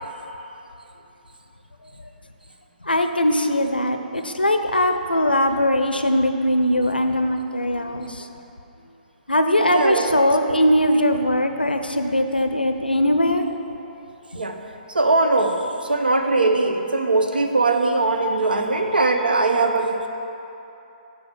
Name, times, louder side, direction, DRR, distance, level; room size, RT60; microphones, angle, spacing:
voice 1, 2.8-8.3 9.3-13.5, left 1 dB, 85° left, 6 dB, 0.6 m, -20 dB
voice 2, 9.7-10.1 14.3-14.6 14.9-20.1, right 3 dB, 75° right, 5 dB, 0.7 m, -20 dB
7.9 x 4.7 x 6.0 m, 2.9 s
figure-of-eight pair, 125°, 5 cm